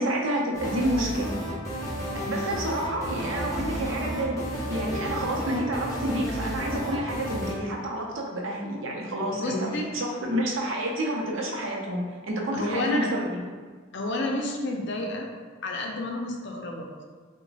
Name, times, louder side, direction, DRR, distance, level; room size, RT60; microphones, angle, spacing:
voice 1, 0.0-1.3 1.7-4.4 4.7-13.4, right 1 dB, 75° right, -1 dB, 0.6 m, -29 dB
sound 1, 0.5-7.5, equal, 15° left, 0.7 m, -32 dB
voice 2, 9.3-9.9 12.5-13.1 13.9-15.3 15.6-17.0, left 1 dB, 60° left, 1 dB, 0.5 m, -30 dB
3.0 x 2.2 x 3.9 m, 1.5 s
head